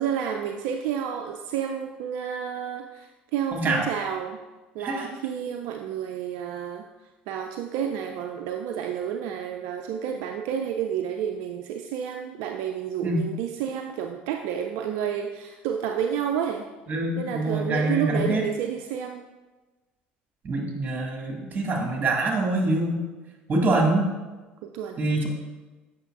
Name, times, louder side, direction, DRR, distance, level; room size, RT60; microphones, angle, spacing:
voice 1, 0.0-4.4 4.7-6.9 7.3-16.7 17.2-19.2 24.6-25.0, right 8 dB, 65° right, 4 dB, 0.4 m, -30 dB
voice 2, 3.5-3.8 4.8-5.1 13.0-13.3 16.9-18.4 20.4-23.0 23.5-24.1 25.0-25.3, right 2 dB, 30° right, 0 dB, 1.8 m, -25 dB
7.9 x 6.0 x 2.4 m, 1.2 s
hypercardioid pair, 65°, 5 cm